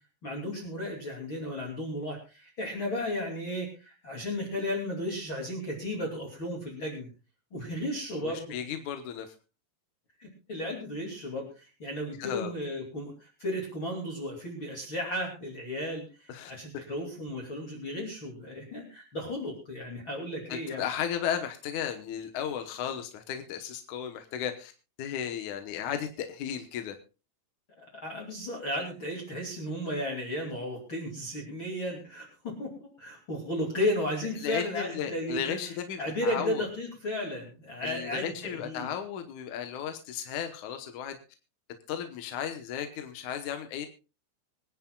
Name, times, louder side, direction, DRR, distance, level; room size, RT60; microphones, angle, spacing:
voice 1, 0.2-7.1 7.5-8.5 10.2-20.8 27.8-38.9, left 1 dB, 35° left, -1 dB, 3.2 m, -34 dB
voice 2, 8.2-9.3 12.2-12.5 16.3-16.5 20.5-24.7 25.0-27.0 34.4-36.7 37.8-41.2 41.9-43.9, left 9 dB, 65° left, 7 dB, 2.1 m, -35 dB
25.0 x 10.5 x 2.3 m, 0.31 s
omnidirectional pair, 4.3 m